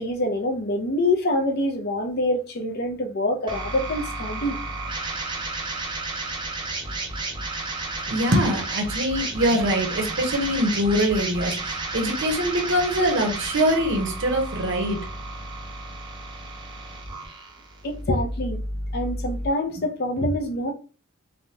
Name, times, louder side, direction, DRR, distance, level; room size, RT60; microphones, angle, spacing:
voice 1, 0.0-4.6 17.8-18.6 18.9-20.7, left 1 dB, 45° left, 0.5 m, -25 dB
sound 1, 3.5-19.5, right 2 dB, 20° right, 0.4 m, -32 dB
voice 2, 8.1-15.0, equal, 55° right, 0.8 m, -23 dB
3.3 x 2.2 x 2.8 m
head